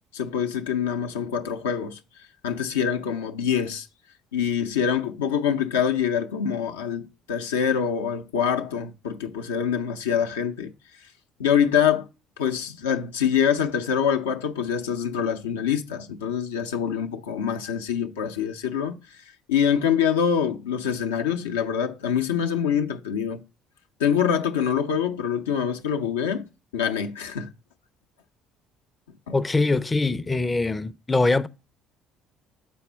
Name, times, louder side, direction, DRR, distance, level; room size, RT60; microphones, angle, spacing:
voice 1, 0.1-2.0 2.4-3.9 4.3-10.7 11.4-12.1 12.4-19.0 19.5-23.4 24.0-26.5 26.7-27.5 29.3-29.4, left 8 dB, 85° left, 0.5 m, -25 dB
voice 2, 29.3-31.5, left 3 dB, 20° left, 0.4 m, -23 dB
7.0 x 4.2 x 3.3 m
hypercardioid pair, 60°, 0 cm